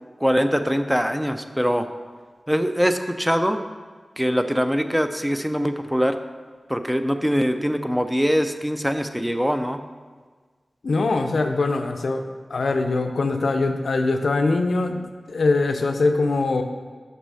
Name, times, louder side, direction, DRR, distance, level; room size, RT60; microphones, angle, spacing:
voice 1, 0.2-1.9 2.5-3.6 4.2-6.2 6.7-9.8, equal, 5° right, 8 dB, 0.5 m, -22 dB
voice 2, 10.8-15.0 15.3-16.6, left 3 dB, 80° left, 6 dB, 0.5 m, -22 dB
5.9 x 5.5 x 5.5 m, 1.5 s
wide cardioid pair, 55°, 0 cm